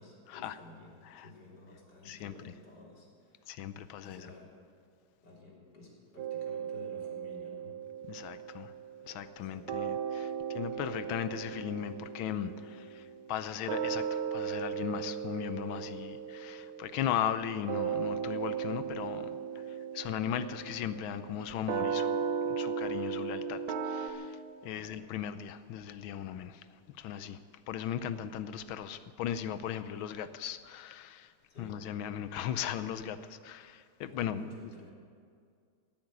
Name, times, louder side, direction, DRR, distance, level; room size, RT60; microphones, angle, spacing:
voice 1, 0.0-3.7 4.0-4.5 5.2-7.8 9.4-9.9 24.7-25.0 31.5-31.8 34.0-34.9, left 2 dB, 55° left, -2 dB, 3.8 m, -53 dB
voice 2, 3.5-4.2 8.1-8.7 9.0-22.2 22.4-27.4 27.7-31.3 31.6-34.7, left 9 dB, 80° left, 12 dB, 1.5 m, -37 dB
sound 1, 6.2-9.4 9.7-24.1, right 7 dB, 85° right, 1.8 m, -37 dB
17.0 x 8.8 x 9.5 m, 2.2 s
omnidirectional pair, 2.2 m